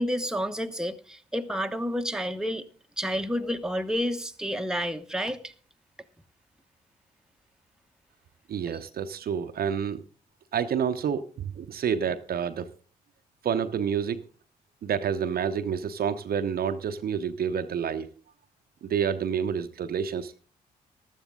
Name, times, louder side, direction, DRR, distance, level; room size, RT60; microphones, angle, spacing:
voice 1, 0.0-2.7 3.0-5.5, equal, 5° right, 1.1 m, -30 dB
voice 2, 8.5-10.0 10.5-12.7 13.4-14.2 14.8-18.1 18.8-20.4, right 7 dB, 55° right, 0.9 m, -28 dB
15.0 x 12.5 x 3.7 m
hypercardioid pair, 40°, 19 cm